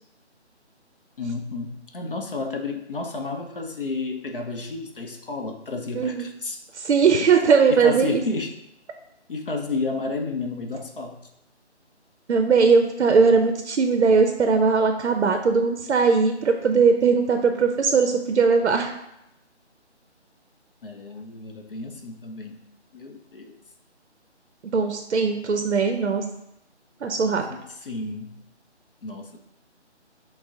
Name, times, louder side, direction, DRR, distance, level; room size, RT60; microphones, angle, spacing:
voice 1, 1.2-6.6 7.7-8.5 9.3-11.2 20.8-22.6 22.9-23.6 27.5-28.3 29.0-29.4, left 3 dB, 50° left, 3 dB, 0.5 m, -31 dB
voice 2, 5.9-6.3 6.7-8.2 12.3-18.9 24.7-26.2 27.0-27.4, right 5 dB, 75° right, 5 dB, 0.6 m, -19 dB
5.9 x 2.0 x 3.7 m, 0.83 s
figure-of-eight pair, 160°, 35 cm